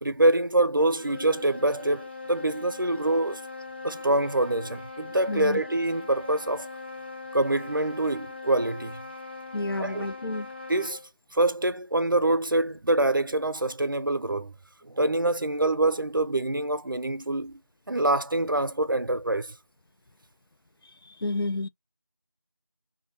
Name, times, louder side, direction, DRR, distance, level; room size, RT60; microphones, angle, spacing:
voice 1, 0.0-3.4 3.8-6.7 7.3-9.0 9.8-10.0 10.7-11.0 11.3-14.5 14.8-17.6 17.9-19.5, right 2 dB, 65° right, 0.6 m, -25 dB
sound 1, 0.8-11.1, left 3 dB, 30° left, 0.7 m, -41 dB
voice 2, 5.3-5.6 9.5-10.5 21.2-21.7, left 2 dB, 80° left, 0.4 m, -30 dB
2.8 x 2.7 x 2.9 m
figure-of-eight pair, 175°, 12 cm